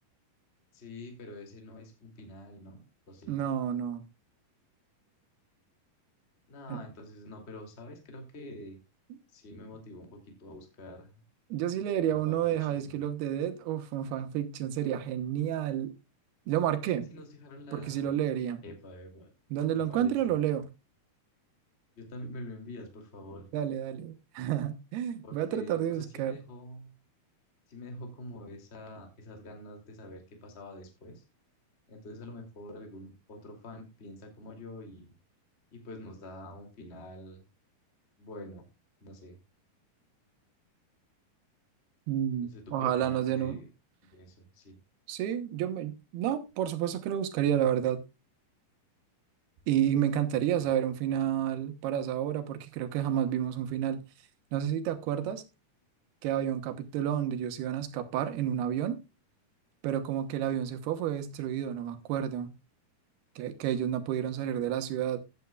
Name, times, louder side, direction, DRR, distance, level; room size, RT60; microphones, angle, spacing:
voice 1, 0.7-3.4 6.5-8.8 9.3-11.2 12.0-13.1 17.1-18.1 18.6-19.3 19.7-20.3 22.0-23.5 25.2-26.9 27.7-31.2 31.9-35.1 35.7-37.4 38.2-38.7 39.0-39.4 42.4-43.7 44.0-44.8 50.4-50.6, left 1 dB, 20° left, 2.2 m, -46 dB
voice 2, 3.3-4.0 6.7-6.8 11.5-15.9 16.5-17.1 17.7-18.6 19.5-20.7 23.5-26.4 42.1-43.6 45.1-48.0 49.7-54.0 54.5-55.4 56.2-59.0 59.8-62.5 63.4-65.2, right 10 dB, 90° right, 3.2 m, -30 dB
15.0 x 9.2 x 2.3 m
omnidirectional pair, 4.4 m